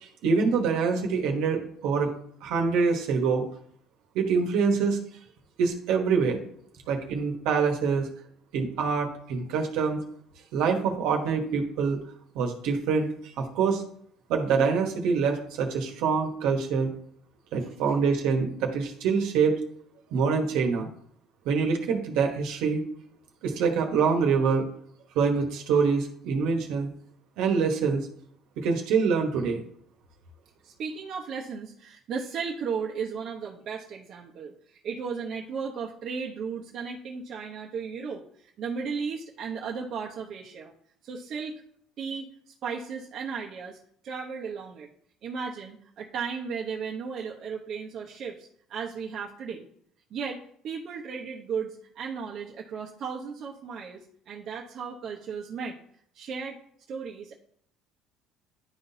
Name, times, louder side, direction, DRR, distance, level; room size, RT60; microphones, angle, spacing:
voice 1, 0.0-2.1 2.4-3.4 4.1-5.0 5.6-6.4 6.9-8.1 8.5-10.0 10.5-12.0 12.3-13.1 13.4-13.8 14.3-16.9 17.5-19.6 20.1-20.9 21.4-22.8 23.4-24.7 25.1-26.9 27.4-28.0 28.6-29.6, right 5 dB, 75° right, 3 dB, 1.3 m, -25 dB
voice 2, 30.6-40.7 41.0-41.6 42.0-44.9 45.2-49.6 50.1-55.8 56.1-56.6 56.9-57.3, right 6 dB, 55° right, -3 dB, 0.9 m, -35 dB
11.0 x 3.9 x 2.8 m, 0.64 s
supercardioid pair, 80°, 0 cm